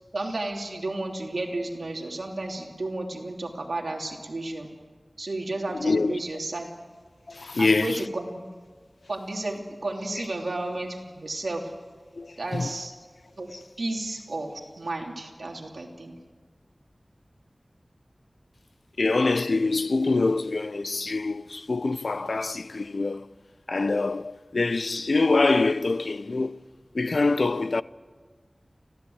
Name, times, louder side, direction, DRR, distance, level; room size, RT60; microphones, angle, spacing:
voice 1, 0.1-4.7 5.2-6.7 7.6-8.4 9.1-11.7 12.4-12.9 13.4-16.1, right 2 dB, 80° right, 3.2 m, -32 dB
voice 2, 5.8-6.2 7.3-8.0 10.2-10.3 12.2-12.7 13.5-13.6 19.0-23.3 23.7-26.6 26.9-27.8, left 3 dB, 80° left, 0.6 m, -25 dB
24.5 x 16.5 x 8.0 m
wide cardioid pair, 60°, 0 cm